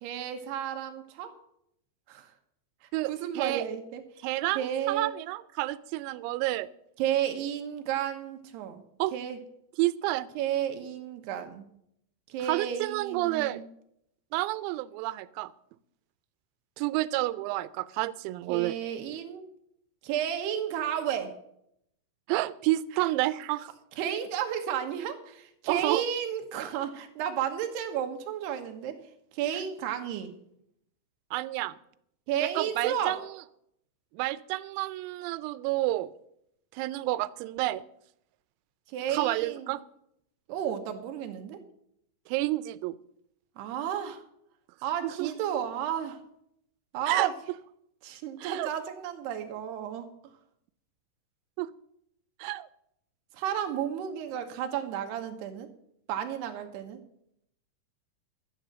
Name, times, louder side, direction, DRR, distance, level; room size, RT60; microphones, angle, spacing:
voice 1, 0.0-1.3 2.1-2.3 3.1-4.0 4.6-5.1 7.0-8.8 9.1-9.4 10.4-11.6 12.3-13.6 18.5-19.5 20.0-21.4 24.0-29.0 29.3-30.3 32.3-33.2 38.9-39.8 40.5-41.6 43.6-44.2 44.8-46.2 46.9-47.3 48.0-50.1 53.3-55.7 56.1-57.0, right 9 dB, 70° right, 6 dB, 2.6 m, -32 dB
voice 2, 2.9-3.7 4.2-6.7 9.0-9.1 9.8-10.3 12.5-13.7 14.3-15.5 16.8-18.7 22.3-23.7 25.7-26.0 31.3-31.8 32.4-33.2 34.1-36.1 36.7-37.8 39.1-39.8 42.3-43.0 45.2-45.3 47.1-47.3 48.4-48.7 51.6-51.7 52.4-52.7, right 17 dB, 85° right, 17 dB, 3.3 m, -29 dB
13.0 x 9.2 x 6.5 m, 0.74 s
omnidirectional pair, 6.0 m